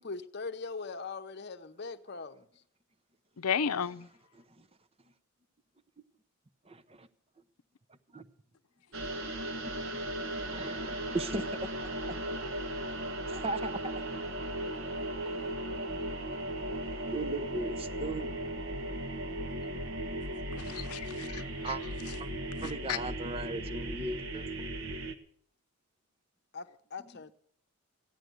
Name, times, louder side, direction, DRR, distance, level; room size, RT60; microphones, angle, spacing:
voice 1, 0.0-2.6 26.5-27.3, left 4 dB, 50° left, 0.8 m, -41 dB
voice 2, 3.4-4.1 20.5-21.7 22.6-23.0, left 7 dB, 85° left, 0.6 m, -34 dB
voice 3, 4.3-4.7 6.7-7.1 8.1-8.3 9.2-9.3 10.4-11.7 12.1-12.2 13.3-13.9 15.2-15.4 17.1-18.3 21.6-21.8 22.2-22.3 22.6-24.5, right 2 dB, 25° right, 0.7 m, -37 dB
sound 1, 8.9-25.1, right 1 dB, 60° right, 1.2 m, -37 dB
14.5 x 10.5 x 8.0 m
head